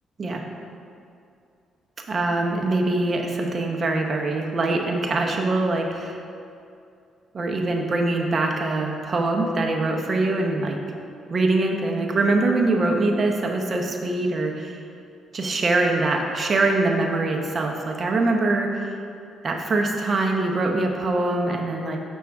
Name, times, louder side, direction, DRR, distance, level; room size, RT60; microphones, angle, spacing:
voice 1, 2.1-6.2 7.3-10.8 11.3-14.8 15.3-18.8 19.4-22.0, right 2 dB, 40° right, 1 dB, 0.8 m, -23 dB
6.3 x 6.2 x 3.5 m, 2.5 s
cardioid pair, 90°, 0 cm